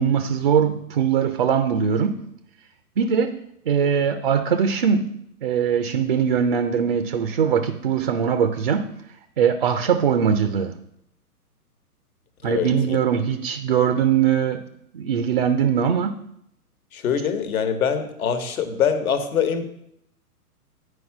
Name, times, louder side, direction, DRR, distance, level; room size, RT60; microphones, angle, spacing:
voice 1, 0.0-2.2 3.0-3.4 3.7-5.1 5.4-8.9 9.4-10.7 12.4-14.6 14.9-16.2, right 7 dB, 35° right, 9 dB, 0.4 m, -21 dB
voice 2, 12.4-13.0 16.9-19.6, left 7 dB, 65° left, 9 dB, 1.3 m, -24 dB
9.7 x 4.7 x 5.8 m, 0.75 s
hypercardioid pair, 130°, 47 cm